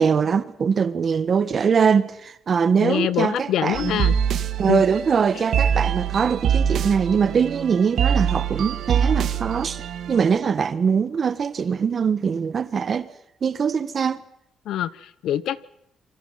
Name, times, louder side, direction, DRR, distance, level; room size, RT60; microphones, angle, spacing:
voice 1, 0.0-3.9 4.6-9.8 10.1-13.1 13.4-14.2, right 6 dB, 45° right, 1.6 m, -22 dB
voice 2, 2.8-4.2 4.7-4.8 5.3-5.4 14.6-15.7, left 11 dB, 80° left, 0.9 m, -25 dB
sound 1, 3.7-10.3, right 8 dB, 70° right, 1.6 m, -24 dB
27.5 x 24.0 x 5.9 m
cardioid pair, 90°, 0 cm